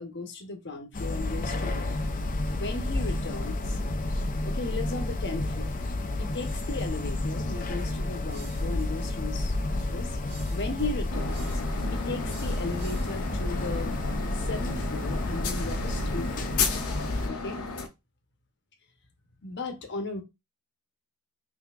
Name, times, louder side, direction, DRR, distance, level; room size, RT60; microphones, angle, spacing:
voice 1, 0.0-2.0 2.5-3.8 4.4-5.7 6.2-10.2 10.5-11.6 11.9-14.0 14.3-16.8 17.3-17.6 19.4-20.2, left 3 dB, 50° left, 0.9 m, -36 dB
sound 1, 0.9-17.3, left 2 dB, 35° left, 0.5 m, -30 dB
sound 2, 6.4-13.3, right 2 dB, 85° right, 1.2 m, -50 dB
sound 3, 11.1-17.9, left 5 dB, 75° left, 0.8 m, -34 dB
5.4 x 2.8 x 2.5 m
head